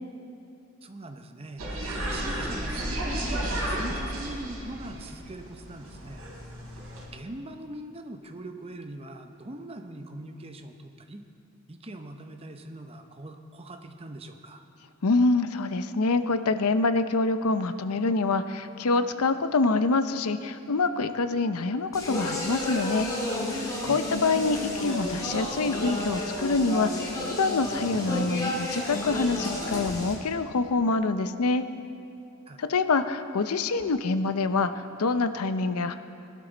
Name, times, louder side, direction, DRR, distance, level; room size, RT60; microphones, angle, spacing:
voice 1, 0.8-1.7 2.1-6.2 7.1-11.2 11.7-14.6 23.9-24.1 32.5-32.6, right 1 dB, 25° right, 6 dB, 0.8 m, -41 dB
sound 1, 1.6-7.1, right 1 dB, 75° right, 3.7 m, -33 dB
voice 2, 15.0-23.1 23.5-31.6 32.6-35.9, left 3 dB, 85° left, 10 dB, 0.6 m, -26 dB
Speech, 21.9-30.1, left 1 dB, 15° left, 2.3 m, -32 dB
19.5 x 12.0 x 4.0 m, 2.5 s
head